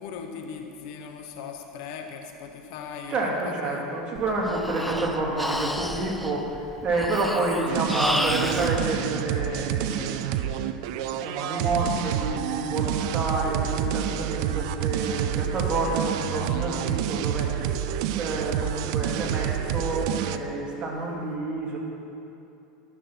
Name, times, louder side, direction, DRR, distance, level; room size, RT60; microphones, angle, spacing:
voice 1, 0.0-3.2 3.4-3.8, left 6 dB, 65° left, 4 dB, 1.2 m, -39 dB
voice 2, 3.1-10.4 11.1-17.5 18.1-21.8, right 2 dB, 35° right, -2 dB, 2.6 m, -29 dB
Breathing, 4.2-8.7, equal, ahead, 0.6 m, -31 dB
sound 1, 7.7-20.4, right 11 dB, 65° right, 0.4 m, -28 dB
12.0 x 6.5 x 6.0 m, 2.8 s
hypercardioid pair, 90°, 4 cm